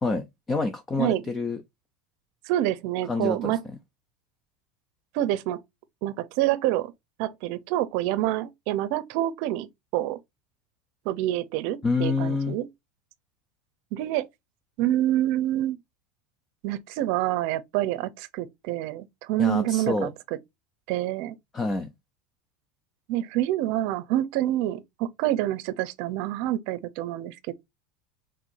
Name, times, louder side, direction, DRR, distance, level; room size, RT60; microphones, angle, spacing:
voice 1, 0.0-1.6 3.1-3.6 11.8-12.6 19.4-20.1 21.5-21.9, left 3 dB, 15° left, 0.6 m, -27 dB
voice 2, 2.5-3.6 5.1-5.6 6.0-6.9 7.2-9.7 9.9-10.2 11.0-12.7 13.9-14.3 14.8-15.8 16.6-20.1 20.9-21.4 23.1-27.5, right 13 dB, 60° right, 0.7 m, -27 dB
4.7 x 3.7 x 2.6 m
supercardioid pair, 150°, 0 cm